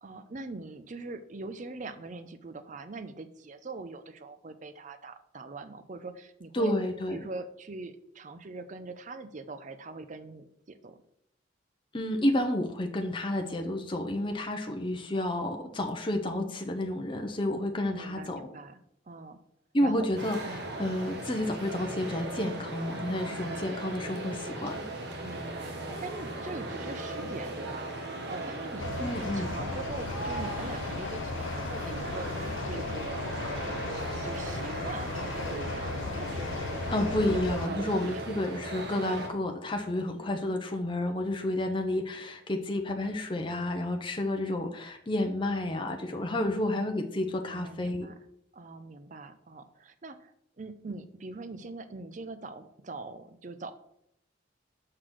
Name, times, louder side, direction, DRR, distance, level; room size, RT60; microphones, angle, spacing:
voice 1, 0.0-6.7 7.1-11.0 17.9-18.8 19.1-19.4 19.8-20.1 20.4-20.7 25.2-27.9 28.3-34.0 34.2-38.2 47.4-48.1 48.5-53.7, right 3 dB, 40° right, 10 dB, 0.5 m, -42 dB
voice 2, 6.5-7.2 11.9-18.5 19.7-24.8 29.0-29.5 36.9-48.1, left 1 dB, 25° left, 3 dB, 0.7 m, -30 dB
sound 1, 20.2-39.3, right 2 dB, 55° right, 1.2 m, -38 dB
sound 2, 28.8-37.7, left 4 dB, 85° left, 0.5 m, -36 dB
6.5 x 3.9 x 6.1 m, 0.73 s
head